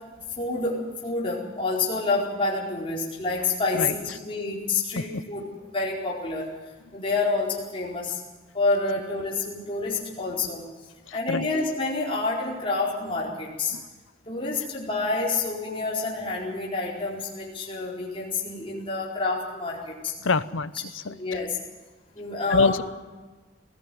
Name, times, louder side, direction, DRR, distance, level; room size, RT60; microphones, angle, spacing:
voice 1, 0.4-0.8 1.0-5.4 5.7-6.5 6.9-8.2 8.5-10.6 11.1-13.7 14.3-20.1 21.0-21.6 22.1-22.8, left 3 dB, 25° left, -4 dB, 4.6 m, -28 dB
voice 2, 11.1-11.5 13.7-13.9 20.2-21.1 22.5-22.8, left 4 dB, 85° left, 16 dB, 0.8 m, -25 dB
20.0 x 15.0 x 9.3 m, 1.3 s
head